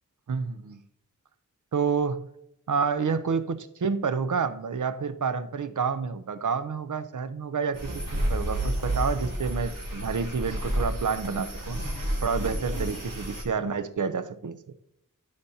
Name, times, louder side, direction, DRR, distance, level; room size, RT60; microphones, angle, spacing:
voice 1, 0.3-0.8 1.7-2.2 2.7-11.8 12.2-14.7, right 5 dB, 65° right, 12 dB, 0.6 m, -29 dB
sound 1, 7.7-13.4, right 1 dB, 85° right, 2.6 m, -30 dB
14.5 x 5.1 x 2.8 m, 0.81 s
wide cardioid pair, 70°, 32 cm